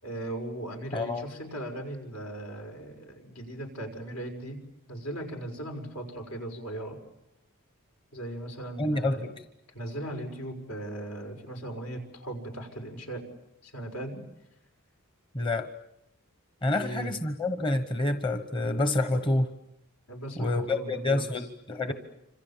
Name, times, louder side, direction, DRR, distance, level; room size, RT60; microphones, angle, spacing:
voice 1, 0.0-4.6 4.9-7.0 8.1-9.3 9.7-13.3 13.6-14.2 16.7-17.1 20.1-21.4 21.8-21.9, right 1 dB, 80° left, 4 dB, 5.6 m, -38 dB
voice 2, 0.9-1.3 8.8-9.3 15.3-15.7 16.6-19.5 20.4-21.9, left 2 dB, 20° left, 9 dB, 1.1 m, -28 dB
29.0 x 26.5 x 7.4 m, 0.86 s
head